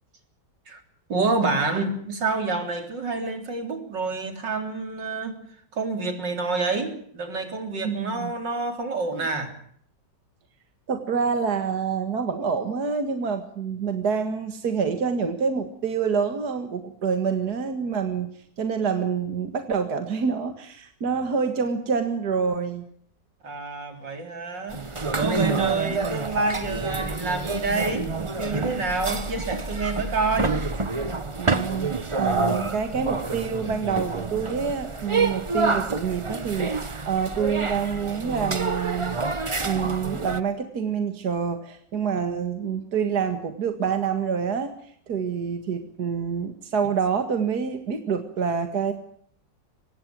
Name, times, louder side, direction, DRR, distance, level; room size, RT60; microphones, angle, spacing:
voice 1, 1.1-5.4 5.7-9.5 23.4-24.8 25.1-30.7, right 3 dB, 85° right, 6 dB, 4.2 m, -28 dB
voice 2, 7.8-8.3 9.1-9.2 10.9-18.3 18.6-22.9 25.2-25.8 31.4-39.2 39.6-44.7 45.1-48.9, right 6 dB, 60° right, 7 dB, 2.3 m, -27 dB
sound 1, 24.7-40.4, right 3 dB, 20° right, 0.9 m, -28 dB
24.5 x 19.0 x 7.6 m, 0.62 s
omnidirectional pair, 1.9 m